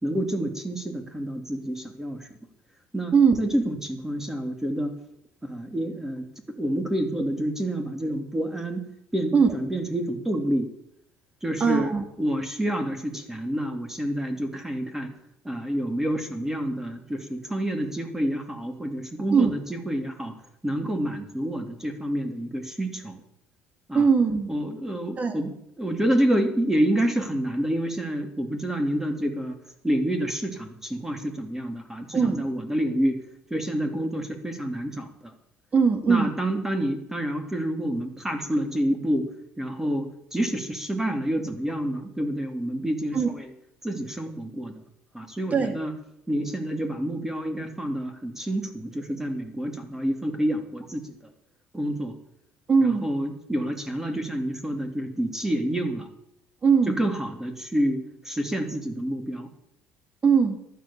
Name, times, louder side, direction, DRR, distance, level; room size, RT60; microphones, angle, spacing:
voice 1, 0.0-2.3 2.9-4.9 5.4-6.3 6.6-8.8 9.1-10.7 11.4-11.9 12.2-15.1 15.4-20.3 20.6-23.2 23.9-24.1 24.5-29.6 29.8-33.2 33.5-35.3 36.0-39.3 39.6-43.5 43.8-44.8 45.1-45.9 46.3-51.3 51.7-52.2 52.8-56.1 56.8-59.5, right 1 dB, 10° right, 6 dB, 3.1 m, -28 dB
voice 2, 11.6-12.0 19.3-19.5 23.9-24.5 25.2-25.3 32.1-32.4 35.7-36.3 43.1-43.3 45.5-45.7 52.7-53.1 56.6-57.0 60.2-60.6, right 5 dB, 30° right, 7 dB, 3.2 m, -20 dB
14.5 x 11.5 x 7.2 m, 0.77 s
supercardioid pair, 95°, 5 cm